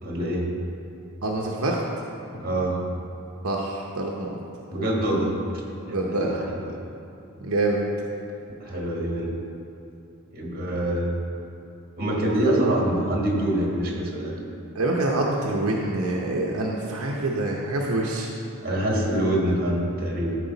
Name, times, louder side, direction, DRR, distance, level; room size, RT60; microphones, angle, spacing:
voice 1, 0.0-0.5 2.3-2.8 4.7-5.3 5.9-6.7 8.6-9.3 10.3-11.1 12.0-14.3 18.6-20.4, right 1 dB, 45° right, -2 dB, 1.5 m, -25 dB
voice 2, 1.2-1.8 3.4-4.4 5.9-6.4 7.4-7.8 14.7-18.3, right 2 dB, 75° right, -2 dB, 0.8 m, -26 dB
13.0 x 4.9 x 3.9 m, 2.9 s
head